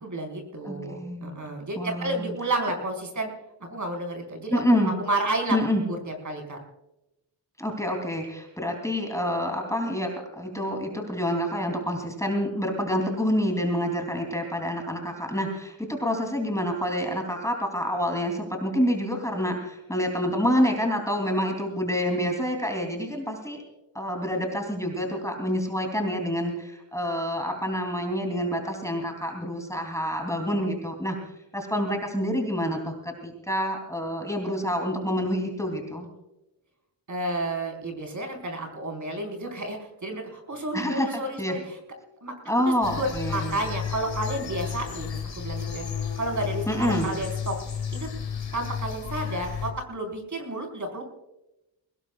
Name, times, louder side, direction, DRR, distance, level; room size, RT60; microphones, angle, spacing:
voice 1, 0.0-3.3 3.6-5.6 5.9-6.6 37.1-41.8 42.2-42.3 42.9-47.6 47.9-48.1 48.5-51.0, right 2 dB, 40° right, 2 dB, 4.7 m, -31 dB
voice 2, 0.6-1.5 1.7-2.3 4.5-4.9 5.5-5.8 7.6-23.6 23.9-31.2 31.5-36.1 40.7-41.5 42.5-43.6 46.7-47.1, equal, 5° left, 2 dB, 3.1 m, -27 dB
sound 1, 42.8-49.7, left 7 dB, 80° left, 3.2 m, -33 dB
22.5 x 19.5 x 2.4 m, 0.93 s
wide cardioid pair, 125°, 44 cm